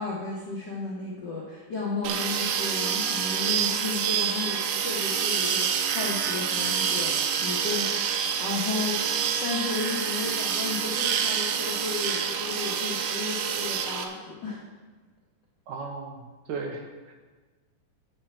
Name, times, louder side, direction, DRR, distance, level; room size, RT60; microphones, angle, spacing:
voice 1, 0.0-14.6, left 3 dB, 50° left, -5 dB, 1.3 m, -34 dB
sound 1, 2.0-14.0, right 7 dB, 85° right, 2.6 m, -27 dB
voice 2, 15.7-17.1, right 4 dB, 70° right, 2 dB, 2.2 m, -36 dB
8.9 x 6.7 x 7.6 m, 1.3 s
omnidirectional pair, 4.0 m